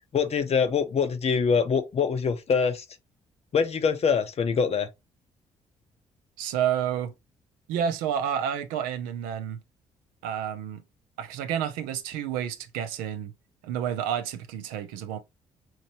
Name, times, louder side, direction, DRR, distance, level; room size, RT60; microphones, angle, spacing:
voice 1, 0.1-2.8 3.5-4.9, left 6 dB, 45° left, 0.8 m, -24 dB
voice 2, 6.4-7.1 7.7-9.6 10.2-10.8 11.2-13.3 13.6-15.2, right 9 dB, 75° right, 0.6 m, -30 dB
4.4 x 3.0 x 2.9 m
hypercardioid pair, 45°, 15 cm